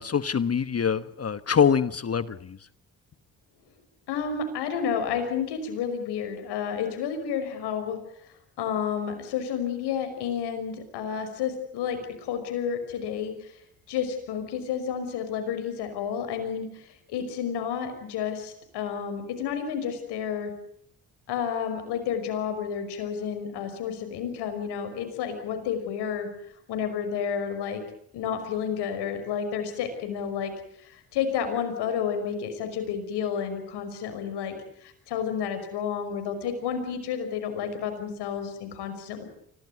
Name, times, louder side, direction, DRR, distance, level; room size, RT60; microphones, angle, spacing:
voice 1, 0.0-2.6, left 7 dB, 35° left, 15 dB, 1.2 m, -24 dB
voice 2, 4.1-8.0 8.6-13.3 13.9-16.7 17.1-20.5 21.3-26.3 26.7-27.8 28.1-30.5 31.1-34.5 35.1-39.2, left 7 dB, 85° left, 7 dB, 5.7 m, -30 dB
25.0 x 18.0 x 9.5 m, 0.71 s
supercardioid pair, 60°, 39 cm